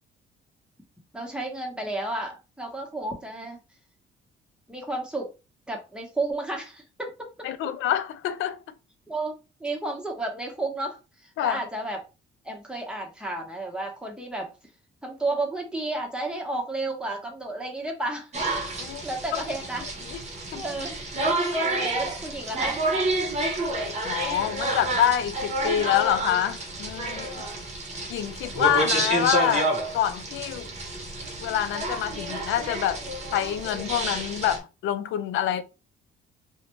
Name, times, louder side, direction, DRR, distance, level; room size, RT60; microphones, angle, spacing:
voice 1, 1.1-3.6 4.7-5.3 5.7-7.5 9.1-12.0 12.4-14.5 15.0-18.3 19.0-19.8 20.5-21.0 21.6-22.8 27.1-27.6, right 2 dB, 5° right, 1.0 m, -32 dB
voice 2, 7.4-8.6 11.4-11.6 18.8-19.0 19.3-19.4 20.1-20.2 20.5-20.6 24.0-27.3 28.1-30.7 31.4-33.0 33.3-35.6, left 10 dB, 80° left, 0.4 m, -26 dB
sound 1, 18.3-34.6, right 2 dB, 35° right, 0.8 m, -29 dB
2.5 x 2.2 x 3.0 m
cardioid pair, 90°, 20 cm